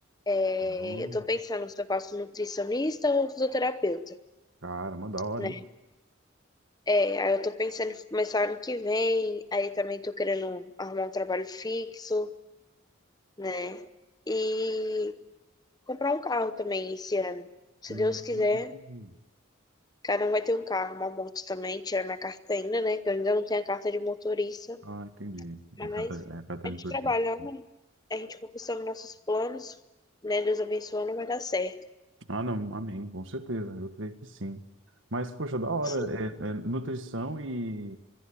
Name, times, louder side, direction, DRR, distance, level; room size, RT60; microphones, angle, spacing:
voice 1, 0.3-4.2 5.4-5.6 6.9-12.3 13.4-13.9 14.3-15.2 15.9-17.5 17.8-18.7 20.0-24.8 25.8-26.1 26.6-27.6 28.1-29.8 30.2-31.9 35.8-36.1, left 2 dB, 20° left, 0.8 m, -30 dB
voice 2, 0.8-1.2 4.6-5.6 17.9-18.5 18.7-19.2 24.8-27.0 32.3-34.6 35.1-38.0, right 1 dB, 65° right, 1.7 m, -35 dB
24.5 x 22.0 x 8.8 m
head